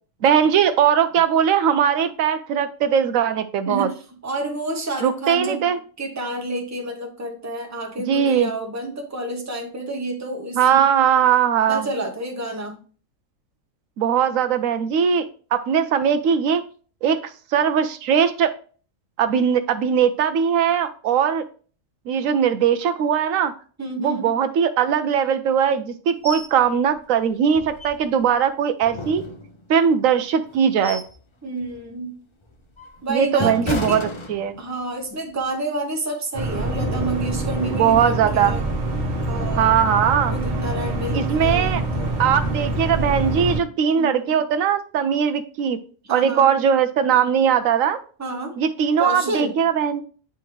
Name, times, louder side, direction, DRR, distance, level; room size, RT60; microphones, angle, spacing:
voice 1, 0.2-3.9 5.0-5.8 8.1-8.5 10.6-11.9 14.0-16.6 17.0-17.2 17.5-18.5 19.2-21.5 22.1-23.5 24.0-29.2 29.7-31.0 33.1-34.6 37.7-38.5 39.6-40.3 41.1-41.8 42.2-45.8 46.1-48.0 48.6-50.0, right 8 dB, 80° right, 9 dB, 1.0 m, -20 dB
voice 2, 3.7-5.6 6.0-10.6 11.7-12.8 23.8-24.3 31.4-32.2 33.0-34.0 34.6-38.6 39.3-39.7 40.3-42.1 43.9-44.4 46.0-46.5 48.2-48.6 49.0-49.6, right 2 dB, 15° right, 2 dB, 0.9 m, -29 dB
sound 1, 26.2-26.5 26.9-27.0 27.5-28.3 28.8-29.8 30.4-31.2 31.6-31.9 32.4-34.9 35.2-35.4, left 1 dB, 35° left, 0.5 m, -32 dB
sound 2, 36.3-43.6, right 2 dB, 35° right, 1.1 m, -25 dB
9.1 x 3.5 x 3.1 m, 0.40 s
omnidirectional pair, 1.4 m